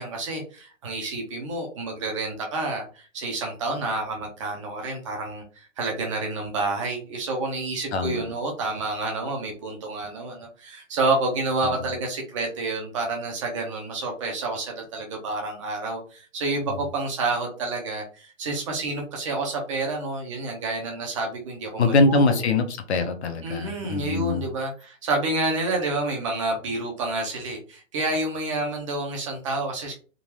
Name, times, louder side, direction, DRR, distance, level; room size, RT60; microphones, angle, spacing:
voice 1, 0.0-22.4 23.4-30.0, right 2 dB, 25° right, 1 dB, 0.7 m, -29 dB
voice 2, 7.9-8.3 11.6-11.7 21.8-24.4, left 3 dB, 50° left, 7 dB, 0.8 m, -23 dB
3.8 x 2.5 x 3.0 m, 0.36 s
hypercardioid pair, 150°, 41 cm